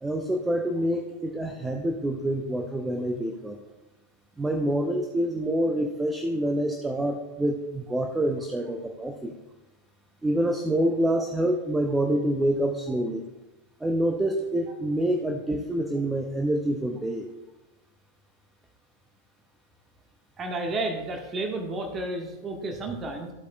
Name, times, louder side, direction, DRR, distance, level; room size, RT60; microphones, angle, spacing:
voice 1, 0.0-3.6 4.4-9.3 10.2-13.2 13.8-17.3, right 1 dB, 10° right, 3 dB, 0.8 m, -27 dB
voice 2, 20.4-23.3, right 2 dB, 25° right, 3 dB, 1.5 m, -31 dB
14.0 x 8.1 x 2.3 m, 1.1 s
figure-of-eight pair, 90°, 0 cm